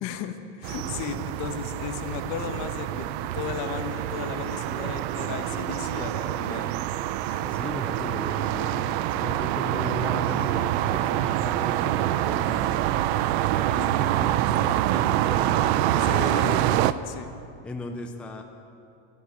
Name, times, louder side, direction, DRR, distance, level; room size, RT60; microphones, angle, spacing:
voice 1, 0.0-3.1 3.3-6.7 16.0-17.3, left 8 dB, 55° left, 8 dB, 1.1 m, -35 dB
sound 1, 0.6-16.9, right 13 dB, 80° right, 0.6 m, -26 dB
voice 2, 7.2-12.9 13.5-16.9 17.6-18.4, left 2 dB, 5° left, 3 dB, 0.5 m, -36 dB
11.5 x 11.5 x 9.7 m, 2.7 s
cardioid pair, 175°, 32 cm